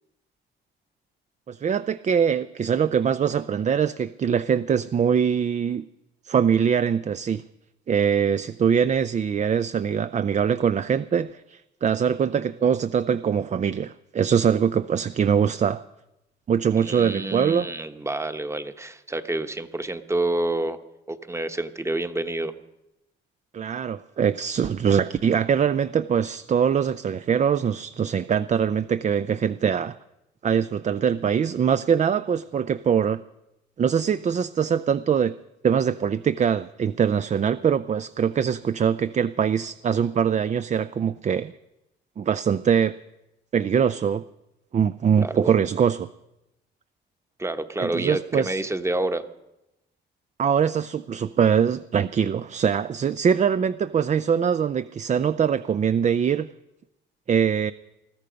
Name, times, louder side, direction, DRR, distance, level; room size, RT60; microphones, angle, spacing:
voice 1, 1.5-5.9 6.3-7.4 7.9-15.8 16.5-17.7 23.5-30.0 30.4-33.2 33.8-35.4 35.6-41.5 42.2-43.0 43.5-44.2 44.7-46.1 47.8-48.6 50.4-56.5 57.3-57.7, right 7 dB, 35° right, 14 dB, 0.5 m, -23 dB
voice 2, 16.8-20.8 21.1-22.5 45.2-45.5 47.4-49.3, right 2 dB, 15° right, 10 dB, 1.1 m, -28 dB
21.0 x 13.5 x 5.2 m, 0.91 s
cardioid pair, 90°, 20 cm